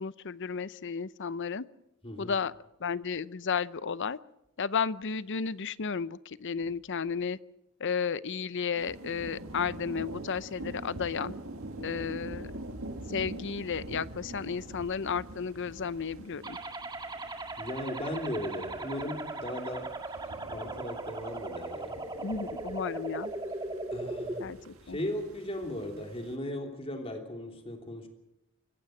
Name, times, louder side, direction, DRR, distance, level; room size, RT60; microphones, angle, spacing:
voice 1, 0.0-1.6 2.2-2.5 2.8-4.2 4.6-7.4 7.8-11.3 11.8-12.5 13.1-16.6 22.2-23.3 24.4-25.0, left 6 dB, 55° left, 0.7 m, -33 dB
voice 2, 2.0-2.4 11.7-12.1 17.6-20.0 20.5-22.0 23.9-24.5 24.9-28.1, left 1 dB, 25° left, 3.2 m, -37 dB
sound 1, 8.8-26.3, right 1 dB, 65° right, 1.9 m, -45 dB
sound 2, 16.4-24.4, right 2 dB, 20° right, 1.6 m, -38 dB
25.5 x 15.0 x 7.7 m
head